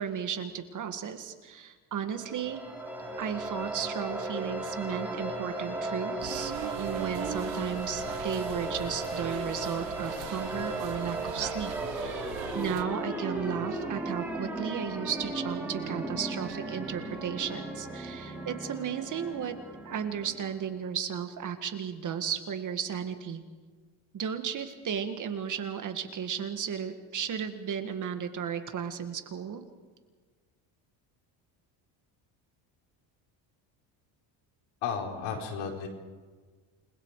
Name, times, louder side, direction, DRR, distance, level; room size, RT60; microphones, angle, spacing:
voice 1, 0.0-2.6 3.2-6.5 6.8-19.6 19.8-23.4 24.1-29.6, right 8 dB, 40° right, 7 dB, 2.0 m, -34 dB
sound 1, 2.1-20.8, right 2 dB, 5° right, 5.8 m, -36 dB
sound 2, 6.2-12.8, right 13 dB, 70° right, 1.4 m, -41 dB
voice 2, 34.8-35.9, left 6 dB, 80° left, 2 dB, 4.5 m, -33 dB
29.0 x 21.0 x 4.9 m, 1.4 s
cardioid pair, 130°, 46 cm